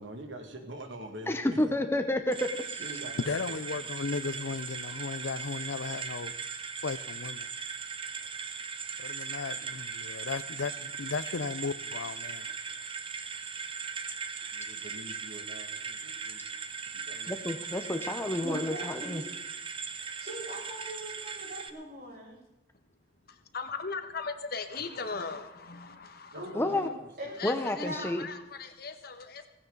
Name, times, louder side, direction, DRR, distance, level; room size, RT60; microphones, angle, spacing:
voice 1, 0.0-1.6 2.8-4.5 14.5-16.5 16.9-17.3 20.1-20.2 26.3-27.1, right 1 dB, 70° right, 2.1 m, -46 dB
voice 2, 1.3-2.8 17.3-19.2 26.5-26.9 27.4-28.2, left 1 dB, 15° left, 0.8 m, -30 dB
sound 1, 2.3-21.7, right 6 dB, 30° right, 0.8 m, -39 dB
voice 3, 3.3-6.3 6.8-7.5 9.0-12.5, left 4 dB, 75° left, 0.6 m, -35 dB
voice 4, 18.4-19.2 20.0-22.4 26.3-26.9 27.2-27.3 27.7-28.2, equal, 55° right, 6.7 m, -41 dB
voice 5, 23.2-26.9 27.3-29.5, left 4 dB, 55° left, 1.3 m, -39 dB
17.0 x 16.0 x 4.0 m
head